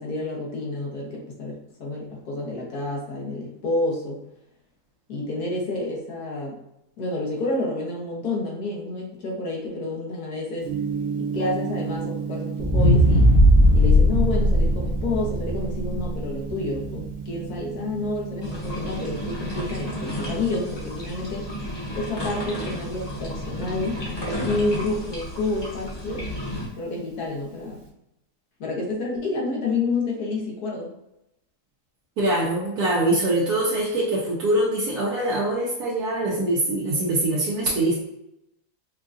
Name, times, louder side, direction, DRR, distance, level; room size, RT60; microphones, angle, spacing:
voice 1, 0.0-4.2 5.1-6.6 7.0-10.7 11.2-13.3 13.7-21.5 21.9-26.3 26.7-27.8 28.6-30.9, left 2 dB, 80° left, -2 dB, 1.6 m, -29 dB
Gong, 10.6-27.9, right 6 dB, 45° right, 0.8 m, -35 dB
sound 1, 12.6-16.8 17.3-17.4, equal, 55° left, 1.9 m, -18 dB
sound 2, 18.4-26.7, left 1 dB, 20° left, 0.7 m, -32 dB
voice 2, 32.2-37.9, right 1 dB, 85° right, -6 dB, 1.3 m, -23 dB
5.3 x 2.4 x 2.6 m, 0.84 s
omnidirectional pair, 1.6 m